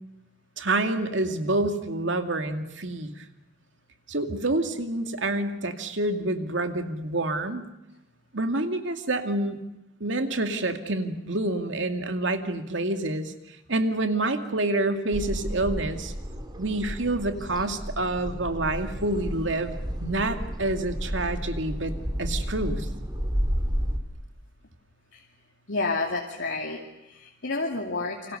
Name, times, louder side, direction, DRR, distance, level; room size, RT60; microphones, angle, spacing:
voice 1, 0.6-3.2 4.1-7.6 8.3-9.6 10.0-13.3 13.7-16.1 16.6-19.7 20.0-21.9 22.2-22.9, right 2 dB, 75° right, 6 dB, 2.4 m, -27 dB
sound 1, 15.1-24.0, equal, 25° right, 2.8 m, -32 dB
voice 2, 25.7-28.4, left 3 dB, 80° left, -1 dB, 2.7 m, -30 dB
28.5 x 26.0 x 6.7 m, 0.94 s
head